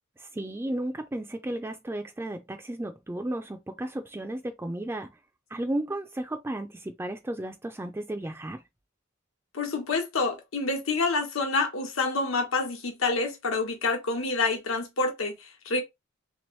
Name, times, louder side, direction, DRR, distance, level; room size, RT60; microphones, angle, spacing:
voice 1, 0.2-5.2 5.5-8.6, right 1 dB, 10° right, 0.3 m, -34 dB
voice 2, 9.5-15.8, left 3 dB, 80° left, 1.1 m, -28 dB
3.4 x 3.0 x 3.0 m
head